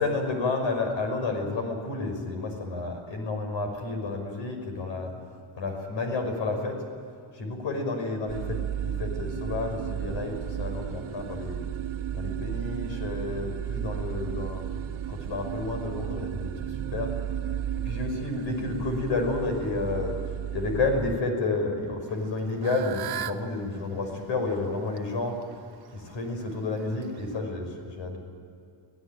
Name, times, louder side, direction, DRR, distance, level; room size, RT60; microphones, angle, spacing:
voice 1, 0.0-5.1 5.6-6.8 7.3-11.6 12.1-14.7 15.1-17.1 17.8-20.2 20.5-25.4 25.9-28.2, left 3 dB, 65° left, 5 dB, 5.8 m, -30 dB
sound 1, 8.3-21.2, right 10 dB, 80° right, 1.2 m, -33 dB
Fowl / Bird, 22.1-27.4, right 10 dB, 50° right, 1.1 m, -41 dB
25.5 x 17.0 x 9.2 m, 2.4 s
cardioid pair, 180°, 48 cm